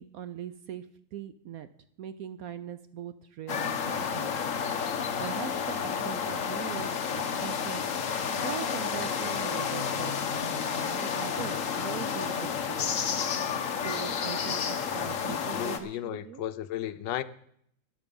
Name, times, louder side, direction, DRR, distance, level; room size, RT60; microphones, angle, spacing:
voice 1, 0.0-1.7 2.0-4.3 5.2-13.0 13.8-16.5, right 9 dB, 70° right, 0.9 m, -41 dB
sound 1, 3.5-15.8, left 7 dB, 50° left, 1.2 m, -31 dB
voice 2, 15.5-17.2, left 12 dB, 75° left, 1.4 m, -34 dB
14.0 x 10.0 x 5.3 m
omnidirectional pair, 2.0 m